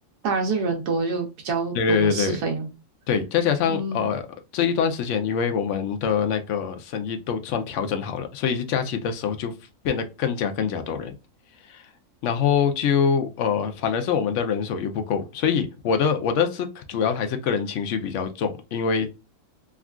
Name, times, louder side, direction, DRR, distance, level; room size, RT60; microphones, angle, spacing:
voice 1, 0.2-2.7 3.7-4.1, right 4 dB, 85° right, 1.2 m, -27 dB
voice 2, 1.7-2.4 3.1-4.2 4.5-9.5 9.8-11.1 11.7-11.8 12.2-19.1, left 7 dB, 65° left, 0.7 m, -24 dB
3.6 x 2.3 x 2.2 m
omnidirectional pair, 1.7 m